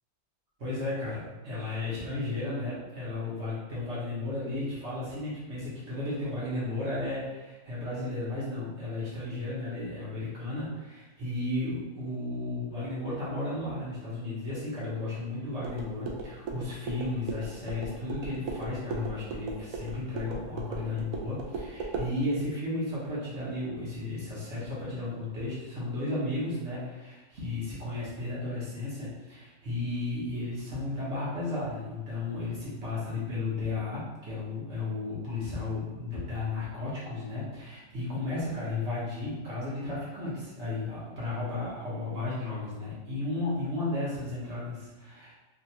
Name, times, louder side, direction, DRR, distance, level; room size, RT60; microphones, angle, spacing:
voice 1, 0.6-45.3, left 2 dB, 45° right, -9 dB, 1.2 m, -34 dB
sound 1, 15.6-22.1, right 3 dB, 70° right, 0.8 m, -38 dB
3.6 x 2.6 x 2.8 m, 1.1 s
omnidirectional pair, 1.9 m